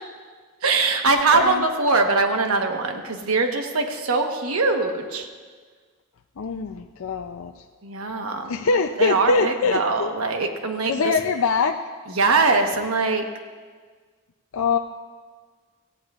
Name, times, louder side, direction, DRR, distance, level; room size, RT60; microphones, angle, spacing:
voice 1, 0.6-5.3 7.8-8.6 9.0-10.9 12.1-13.2, right 3 dB, 80° right, 4 dB, 1.1 m, -22 dB
voice 2, 1.3-1.6 6.4-7.5 8.5-10.1 10.9-11.8 14.5-14.8, left 4 dB, 70° left, 5 dB, 0.5 m, -23 dB
17.5 x 15.0 x 2.4 m, 1.5 s
head